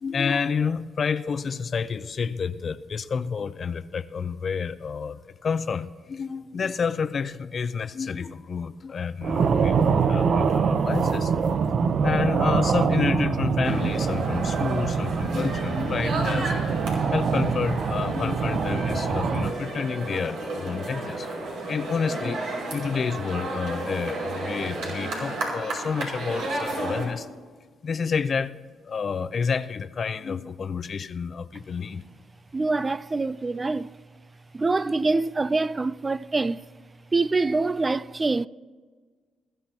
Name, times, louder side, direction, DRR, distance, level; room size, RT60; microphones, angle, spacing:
voice 1, 0.0-11.5 12.0-16.5 17.1-21.3 21.7-22.4 22.7-27.3 27.8-28.6 28.8-32.0, left 5 dB, 45° left, 0.6 m, -29 dB
sound 1, 9.2-19.5, right 6 dB, 55° right, 0.7 m, -24 dB
sound 2, 13.6-27.0, right 2 dB, 80° right, 5.4 m, -32 dB
voice 2, 32.5-34.0 34.5-36.6 37.1-38.5, right 3 dB, 25° right, 0.3 m, -25 dB
22.0 x 13.5 x 2.9 m
cardioid pair, 90°, 0 cm